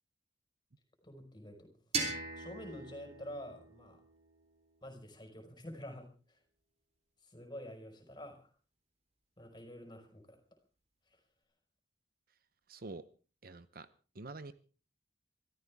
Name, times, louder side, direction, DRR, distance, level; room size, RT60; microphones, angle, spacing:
voice 1, 1.0-1.7 2.3-4.0 4.8-6.4 7.3-8.4 9.4-10.4, equal, 25° left, 4 dB, 5.0 m, -48 dB
sound 1, 1.9-4.8, right 3 dB, 35° right, 3.9 m, -40 dB
voice 2, 12.7-13.0 13.4-13.9 14.2-14.5, right 3 dB, 55° right, 13 dB, 0.8 m, -46 dB
25.5 x 13.5 x 3.6 m, 0.36 s
head